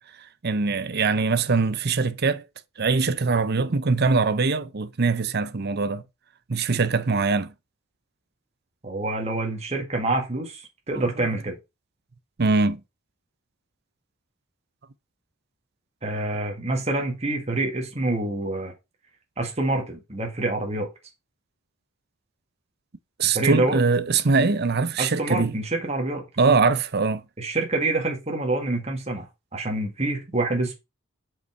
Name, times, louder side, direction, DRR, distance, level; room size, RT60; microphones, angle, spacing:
voice 1, 0.4-2.4 2.8-6.0 6.5-7.5 12.4-12.8 23.2-25.5 26.4-27.2, right 4 dB, 50° right, 0.7 m, -22 dB
voice 2, 8.8-11.6 16.0-18.7 19.4-20.9 23.3-23.8 25.0-26.2 27.4-29.3 29.5-30.7, right 2 dB, 30° right, 2.0 m, -26 dB
6.7 x 5.7 x 4.7 m
head